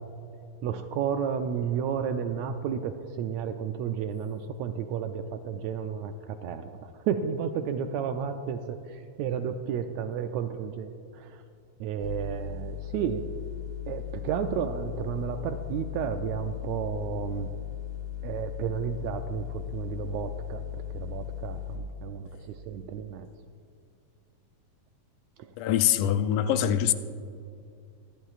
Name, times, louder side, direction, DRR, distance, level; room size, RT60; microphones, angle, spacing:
voice 1, 0.6-11.4 11.8-13.2 13.9-17.5 18.2-23.3 25.4-25.5, right 7 dB, 80° right, 7 dB, 1.6 m, -32 dB
sound 1, 12.0-21.8, left 10 dB, 50° right, 2.4 m, -37 dB
voice 2, 25.6-26.9, left 10 dB, 90° left, 11 dB, 2.1 m, -24 dB
24.0 x 10.5 x 2.4 m, 2.4 s
omnidirectional pair, 3.5 m